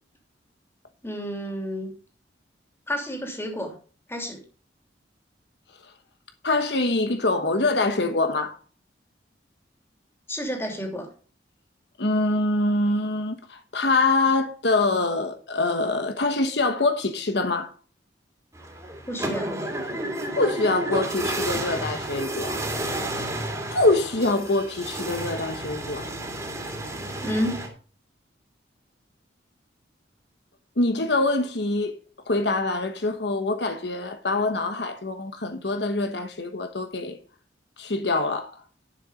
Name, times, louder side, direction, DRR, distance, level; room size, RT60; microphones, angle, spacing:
voice 1, 1.0-1.9 2.9-3.7 4.1-4.4 10.3-11.1 19.1-19.5 27.2-27.6, equal, 15° left, 3.0 m, -30 dB
voice 2, 6.4-8.6 12.0-17.7 20.3-22.6 23.7-26.1 30.8-32.0 32.3-37.2 37.8-38.5, left 2 dB, 65° left, 1.2 m, -24 dB
sound 1, 18.5-27.7, right 1 dB, 15° right, 2.7 m, -31 dB
11.5 x 7.2 x 5.0 m
head